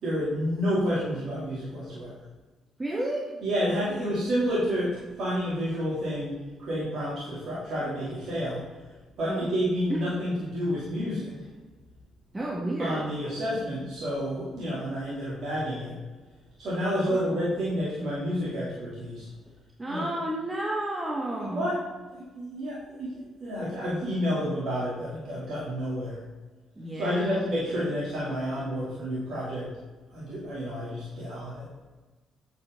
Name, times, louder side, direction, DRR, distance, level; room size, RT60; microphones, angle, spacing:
voice 1, 0.0-2.2 3.4-8.6 9.2-11.5 12.8-15.9 16.6-19.3 19.9-20.1 21.5-21.8 22.1-26.2 26.9-29.7 30.1-31.7, equal, 60° right, -8 dB, 3.4 m, -30 dB
voice 2, 2.8-3.4 9.3-9.5 9.9-10.0 12.3-13.0 17.1-17.3 19.8-21.7 26.8-27.3, right 1 dB, 25° right, -3 dB, 2.1 m, -31 dB
9.3 x 8.6 x 4.0 m, 1.2 s
hypercardioid pair, 45°, 0 cm